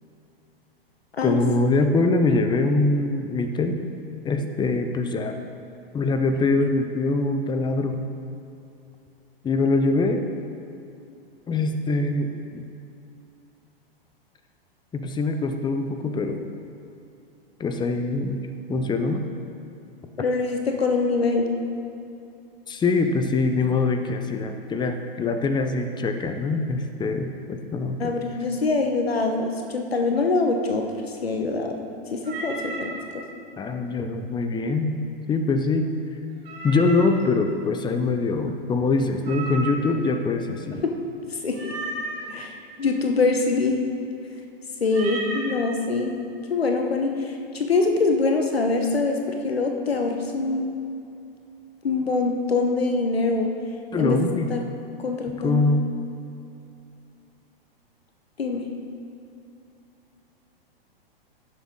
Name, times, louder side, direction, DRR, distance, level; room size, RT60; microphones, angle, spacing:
voice 1, 1.2-3.8 4.2-5.4 5.9-8.0 9.4-10.3 11.5-12.6 14.9-16.4 17.6-19.2 22.7-28.1 33.6-35.0 35.3-35.9 36.6-40.8 53.9-54.5 55.4-55.9, left 3 dB, 15° left, 7 dB, 0.8 m, -23 dB
voice 2, 20.2-21.5 28.0-31.8 32.1-33.2 41.4-41.6 42.3-42.5 42.8-43.8 44.8-46.1 46.5-50.7 51.8-53.5 54.0-54.2 54.5-54.6 55.0-55.7 58.4-58.6, left 3 dB, 90° left, 3 dB, 1.2 m, -24 dB
Meow, 32.2-33.0 36.4-37.2 39.2-40.0 41.5-42.3 44.9-45.5, right 2 dB, 80° right, 2.7 m, -33 dB
17.0 x 7.0 x 3.8 m, 2.6 s
hypercardioid pair, 110°, 30 cm